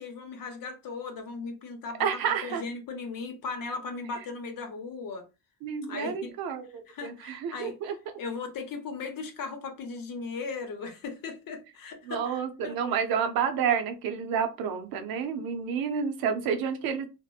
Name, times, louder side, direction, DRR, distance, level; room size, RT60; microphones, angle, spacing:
voice 1, 0.0-5.2 5.9-6.3 6.9-7.7 8.2-12.8, left 4 dB, 70° left, 0.8 m, -37 dB
voice 2, 2.0-2.6 5.6-7.9 12.1-17.1, right 7 dB, 90° right, 0.5 m, -30 dB
2.8 x 2.0 x 2.3 m
supercardioid pair, 50°, 35 cm